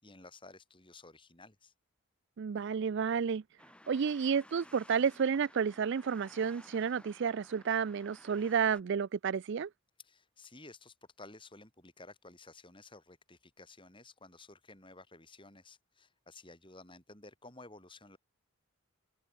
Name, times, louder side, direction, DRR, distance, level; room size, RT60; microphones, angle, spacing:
voice 1, 0.0-1.7 10.0-18.2, left 2 dB, 20° left, 5.4 m, -54 dB
voice 2, 2.4-3.4 3.9-9.7, right 6 dB, 55° right, 0.4 m, -31 dB
sound 1, 3.6-8.8, left 1 dB, 5° left, 3.9 m, -57 dB
open air
head